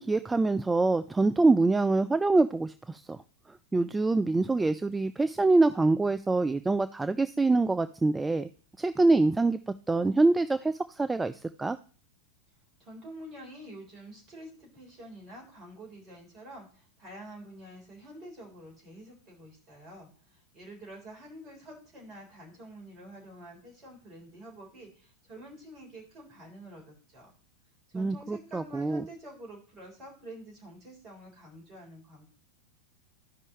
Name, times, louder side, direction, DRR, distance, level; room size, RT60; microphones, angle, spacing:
voice 1, 0.0-3.2 3.7-8.5 8.8-9.6 9.9-11.8 27.9-29.0, right 3 dB, 10° right, 12 dB, 0.3 m, -25 dB
voice 2, 12.8-27.3 27.9-32.3, right 1 dB, 35° right, -1 dB, 3.9 m, -48 dB
13.5 x 5.4 x 3.1 m, 0.40 s
figure-of-eight pair, 90°, 0 cm